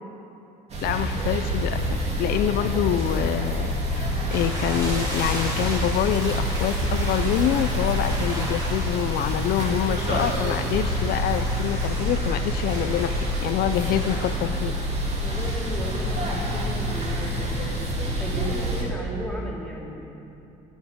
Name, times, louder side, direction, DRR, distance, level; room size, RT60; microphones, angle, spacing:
sound 1, 0.7-18.8, equal, 40° right, 2.4 m, -27 dB
voice 1, 0.8-1.9 2.2-3.7 3.9-13.2 13.4-14.7, left 11 dB, 70° left, 10 dB, 0.4 m, -26 dB
sound 2, 4.3-14.3, equal, 20° right, 3.3 m, -36 dB
voice 2, 15.2-20.1, right 1 dB, 5° left, -4 dB, 2.6 m, -35 dB
17.5 x 7.4 x 5.1 m, 2.7 s
cardioid pair, 110°, 17 cm